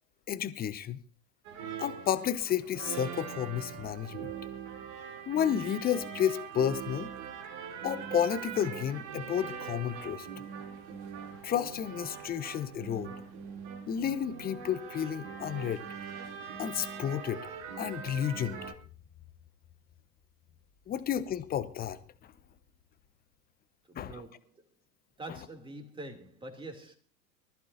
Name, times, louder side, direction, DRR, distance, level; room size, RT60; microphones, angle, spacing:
voice 1, 0.3-1.0 1.8-4.3 5.3-7.1 7.8-10.3 11.4-13.1 13.9-15.9 16.6-17.5 17.8-18.6 20.9-22.0 24.0-24.2 25.3-25.4, left 9 dB, 20° left, 0.9 m, -31 dB
sound 1, 1.4-18.7, right 7 dB, 45° right, 3.1 m, -42 dB
voice 2, 23.9-24.4 25.2-27.0, right 2 dB, 10° right, 2.8 m, -44 dB
24.0 x 14.5 x 2.7 m
figure-of-eight pair, 95°, 49 cm